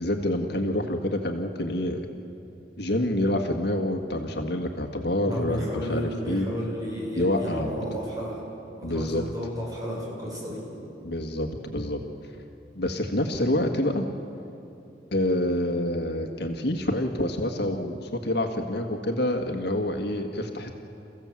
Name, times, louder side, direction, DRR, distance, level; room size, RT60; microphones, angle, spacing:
voice 1, 0.0-2.1 2.8-5.6 5.9-6.5 7.1-7.8 8.8-9.2 11.0-12.0 12.7-14.1 15.1-20.7, left 1 dB, 65° left, 4 dB, 1.7 m, -27 dB
voice 2, 5.2-8.4 8.8-10.6, equal, 20° right, -4 dB, 7.4 m, -32 dB
29.5 x 15.5 x 7.6 m, 2.8 s
head